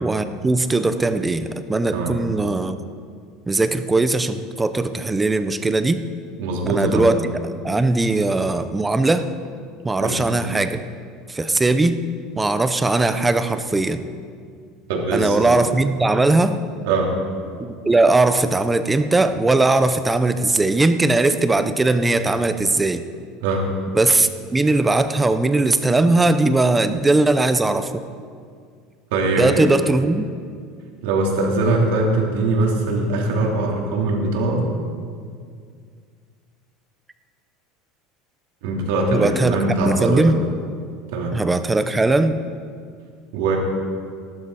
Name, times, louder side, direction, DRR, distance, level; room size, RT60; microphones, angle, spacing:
voice 1, 0.0-2.8 3.5-6.0 6.7-7.2 7.6-9.3 9.8-10.8 11.3-12.0 12.4-14.1 15.1-16.6 17.6-23.0 23.9-28.0 29.4-30.3 39.1-39.6 39.9-40.3 41.3-42.4, right 2 dB, 10° right, 10 dB, 0.6 m, -19 dB
voice 2, 6.4-7.0 10.0-10.2 14.9-15.5 16.8-17.1 23.4-23.7 29.1-29.7 31.0-34.6 38.6-40.4 41.1-41.4 43.3-43.6, right 2 dB, 80° right, -1 dB, 3.0 m, -21 dB
15.0 x 12.0 x 4.8 m, 2.1 s
cardioid pair, 160°, 0 cm